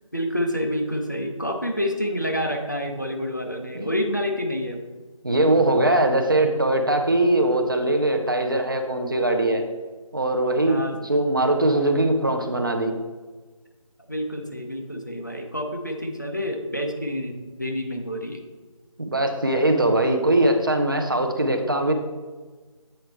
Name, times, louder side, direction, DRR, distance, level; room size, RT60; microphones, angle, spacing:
voice 1, 0.1-4.8 10.7-10.9 14.1-18.4, equal, 35° left, 2 dB, 0.5 m, -28 dB
voice 2, 5.2-9.6 10.1-12.9 19.0-21.9, right 1 dB, 40° right, 4 dB, 0.7 m, -21 dB
7.7 x 4.3 x 3.4 m, 1.3 s
figure-of-eight pair, 170°, 18 cm